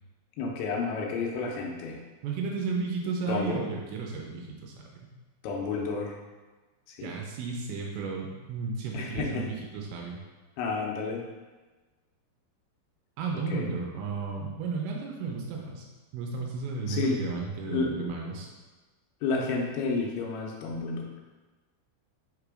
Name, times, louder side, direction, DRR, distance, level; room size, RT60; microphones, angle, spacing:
voice 1, 0.4-2.0 3.3-3.7 5.4-6.2 6.9-7.2 8.9-9.5 10.6-11.3 13.5-13.8 16.9-17.3 17.7-18.1 19.2-21.1, left 4 dB, 85° left, 0 dB, 3.0 m, -31 dB
voice 2, 2.2-5.1 7.0-10.2 13.2-15.8 16.1-18.5, right 4 dB, 80° right, -1 dB, 2.8 m, -33 dB
6.7 x 2.9 x 4.8 m, 1.3 s
omnidirectional pair, 5.4 m